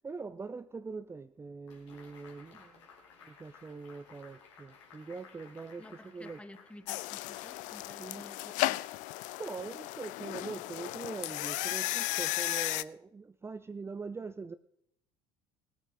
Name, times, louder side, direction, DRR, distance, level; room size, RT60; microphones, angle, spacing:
voice 1, 0.0-2.9 3.2-6.4 8.0-8.6 9.4-14.6, right 4 dB, 15° right, 12 dB, 0.5 m, -43 dB
sound 1, 1.7-8.1, left 5 dB, 75° left, 2.8 m, -57 dB
voice 2, 5.8-8.8, left 1 dB, 5° left, 12 dB, 1.2 m, -52 dB
sound 2, 6.9-12.8, left 19 dB, 55° left, 0.4 m, -35 dB
19.5 x 8.8 x 3.8 m, 0.71 s
figure-of-eight pair, 60°, 16 cm